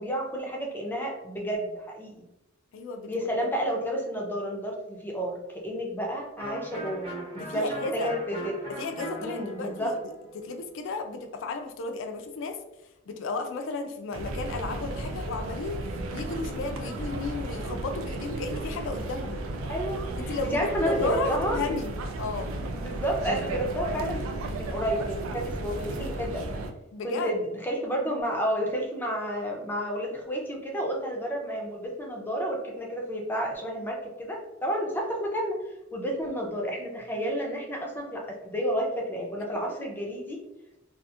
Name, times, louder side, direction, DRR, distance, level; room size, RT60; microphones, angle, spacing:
voice 1, 0.0-2.3 3.1-7.1 7.5-8.5 9.2-10.0 19.7-21.6 22.7-26.4 27.0-35.6 35.9-40.4, equal, 10° left, -1 dB, 0.5 m, -31 dB
voice 2, 2.7-3.5 7.3-8.2 8.7-12.6 13.1-15.8 16.1-19.4 20.2-22.5 26.9-27.4, left 3 dB, 65° left, 6 dB, 0.4 m, -34 dB
Electric guitar, 6.4-12.0, right 1 dB, 30° right, 0.9 m, -41 dB
sound 1, 14.1-26.7, right 2 dB, 80° right, 0.4 m, -34 dB
2.7 x 2.4 x 2.3 m, 0.90 s
head